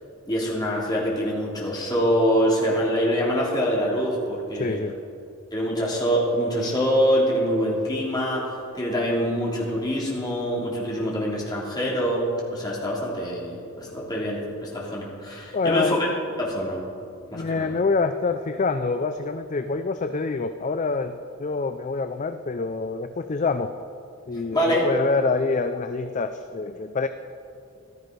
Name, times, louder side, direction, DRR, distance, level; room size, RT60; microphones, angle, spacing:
voice 1, 0.3-4.8 5.5-16.1 16.4-16.8 17.3-17.7 24.5-24.9, equal, 20° left, -5 dB, 3.0 m, -25 dB
voice 2, 4.6-4.9 15.5-16.0 17.3-23.7 24.3-27.1, left 4 dB, 35° left, 9 dB, 0.4 m, -26 dB
14.5 x 12.5 x 5.2 m, 2.5 s
head